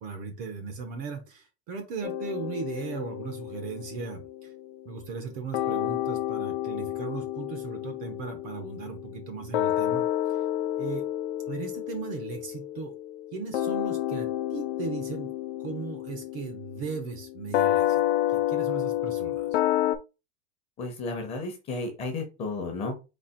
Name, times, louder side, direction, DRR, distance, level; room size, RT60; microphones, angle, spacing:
voice 1, 0.0-4.5 4.8-10.1 10.8-11.1 11.5-12.9 13.3-15.3 15.6-18.0 18.3-19.6, right 5 dB, 30° right, 6 dB, 0.6 m, -37 dB
sound 1, 2.0-5.3 5.5-20.0, left 13 dB, 85° left, 0.7 m, -30 dB
voice 2, 20.8-23.0, left 3 dB, 20° left, 3 dB, 0.9 m, -33 dB
4.2 x 2.9 x 4.3 m, 0.28 s
supercardioid pair, 175°, 31 cm